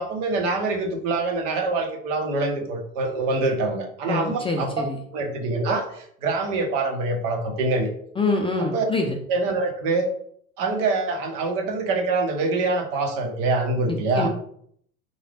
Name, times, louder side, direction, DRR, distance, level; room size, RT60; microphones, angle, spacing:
voice 1, 0.0-4.7 5.1-7.9 8.6-8.8 9.3-10.1 10.6-14.3, right 3 dB, 60° right, 4 dB, 1.1 m, -25 dB
voice 2, 4.1-5.0 8.2-9.1 13.9-14.3, left 3 dB, 15° left, 2 dB, 0.4 m, -25 dB
3.9 x 2.7 x 3.3 m, 0.65 s
hypercardioid pair, 85°, 41 cm